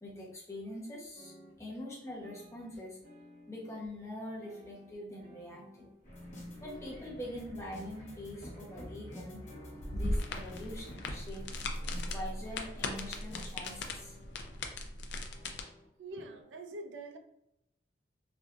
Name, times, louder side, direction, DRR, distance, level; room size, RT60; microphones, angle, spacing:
voice 1, 0.0-3.0 3.5-5.9 6.6-9.4 9.9-11.6 12.1-14.1, left 1 dB, 15° left, 0.8 m, -44 dB
sound 1, 1.1-1.7 2.2-4.0 4.3-6.0 6.5-8.2 8.6-10.4 11.0-13.6 13.9-14.8 15.3-16.4, left 1 dB, 55° right, 1.4 m, -57 dB
sound 2, 6.0-13.9, left 1 dB, 45° left, 1.0 m, -49 dB
sound 3, 9.8-15.6, left 2 dB, 65° left, 0.4 m, -38 dB
voice 2, 16.0-17.2, right 2 dB, 85° right, 0.4 m, -45 dB
3.5 x 2.5 x 2.3 m
head